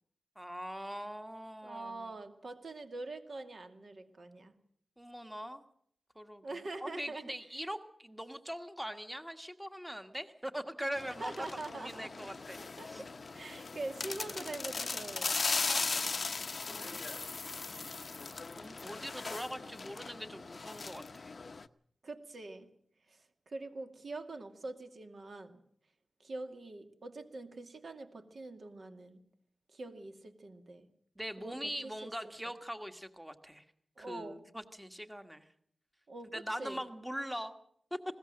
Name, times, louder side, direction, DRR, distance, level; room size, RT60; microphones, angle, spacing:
voice 1, 0.3-2.1 5.0-5.6 6.1-11.4 11.7-12.6 12.8-13.0 15.5-15.8 17.9-18.1 18.5-21.3 31.1-33.6 34.0-35.5 36.3-37.5 37.9-38.0, equal, 5° right, 8 dB, 1.5 m, -42 dB
voice 2, 1.6-4.6 6.4-7.4 11.2-12.3 12.6-15.4 16.6-17.0 22.0-22.7 23.1-25.6 26.2-29.2 29.7-30.9 31.4-31.6 31.8-32.1 32.4-32.5 34.0-34.4 36.1-36.8, right 2 dB, 55° right, 6 dB, 2.4 m, -44 dB
sound 1, 11.0-21.7, left 4 dB, 45° left, 0.7 m, -38 dB
20.5 x 17.5 x 7.6 m, 0.64 s
wide cardioid pair, 135°, 0 cm